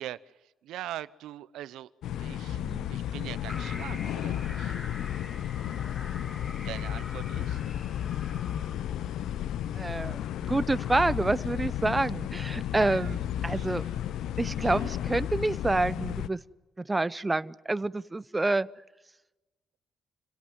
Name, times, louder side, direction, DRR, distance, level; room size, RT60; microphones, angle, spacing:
voice 1, 0.0-1.9 2.2-2.6 2.9-4.8 6.6-7.6 12.8-13.1 13.5-13.9 14.6-14.8, right 13 dB, 85° right, 16 dB, 0.7 m, -42 dB
sound 1, 2.0-16.3, left 11 dB, 80° left, 0.7 m, -33 dB
sound 2, 3.5-8.8, left 2 dB, 25° left, 2.0 m, -45 dB
voice 2, 9.7-10.2 10.5-13.8 14.4-16.4 16.8-18.7, right 2 dB, 20° right, 16 dB, 0.7 m, -28 dB
28.0 x 17.0 x 9.5 m, 1.1 s
cardioid pair, 90°, 0 cm